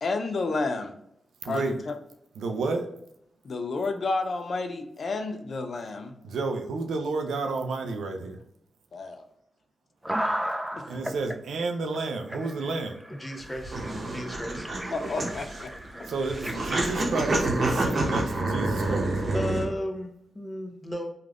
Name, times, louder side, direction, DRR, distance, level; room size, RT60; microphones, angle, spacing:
voice 1, 0.0-0.9 1.5-1.9 3.4-6.2 8.9-9.2 10.8-10.9 14.9-15.7 16.0-16.1, left 3 dB, 65° left, 6 dB, 0.4 m, -31 dB
voice 2, 1.4-1.8 2.4-2.9 6.2-8.4 10.9-13.0 16.1-19.1, right 3 dB, 80° right, 4 dB, 0.4 m, -31 dB
sound 1, 10.0-11.4 11.9-12.0 12.3-17.2, equal, 10° right, 0.3 m, -35 dB
voice 3, 13.1-13.8 14.0-14.7 19.3-21.1, left 1 dB, 25° left, 3 dB, 0.7 m, -34 dB
sound 2, 13.4-19.6, right 2 dB, 60° right, 0.8 m, -28 dB
3.2 x 2.4 x 2.3 m, 0.74 s
supercardioid pair, 40°, 0 cm